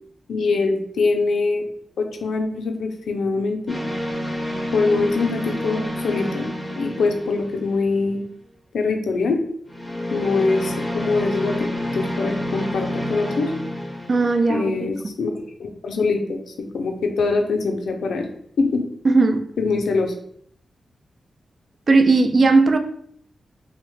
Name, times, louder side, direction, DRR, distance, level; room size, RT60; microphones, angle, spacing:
voice 1, 0.3-1.7 2.0-3.8 4.7-6.5 6.8-8.2 8.7-9.4 10.1-13.5 14.5-18.3 18.6-18.8 19.6-20.1, left 3 dB, 90° left, 0.4 m, -23 dB
sound 1, 3.7-8.1 9.7-14.5, left 1 dB, 10° left, 0.6 m, -29 dB
voice 2, 14.1-14.8 19.0-19.5 21.9-22.8, right 3 dB, 55° right, 0.3 m, -17 dB
2.8 x 2.0 x 3.1 m
cardioid pair, 80°, 0 cm